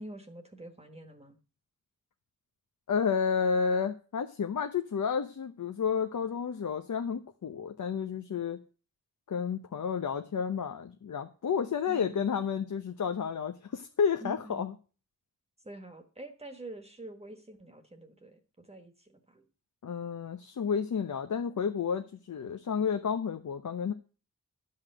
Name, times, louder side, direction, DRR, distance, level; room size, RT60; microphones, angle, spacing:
voice 1, 0.0-1.4 11.9-12.3 14.2-14.6 15.6-19.5, right 1 dB, 20° right, 6 dB, 1.4 m, -46 dB
voice 2, 2.9-8.6 9.3-14.7 19.8-23.9, left 6 dB, 65° left, 7 dB, 1.0 m, -31 dB
12.0 x 5.7 x 7.8 m, 0.36 s
wide cardioid pair, 100°, 32 cm